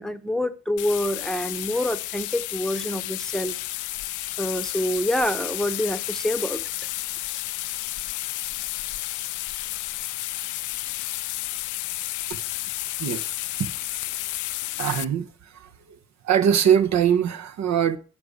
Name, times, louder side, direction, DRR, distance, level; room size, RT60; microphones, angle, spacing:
voice 1, 0.0-3.5 4.4-6.6, left 1 dB, ahead, 0.9 m, -26 dB
sound 1, 0.8-15.0, left 16 dB, 80° left, 0.5 m, -31 dB
voice 2, 13.0-13.3 13.6-13.7 14.8-15.3 15.5-16.0 16.2-18.0, right 9 dB, 65° right, 1.1 m, -22 dB
10.5 x 5.0 x 7.9 m
cardioid pair, 90°, 30 cm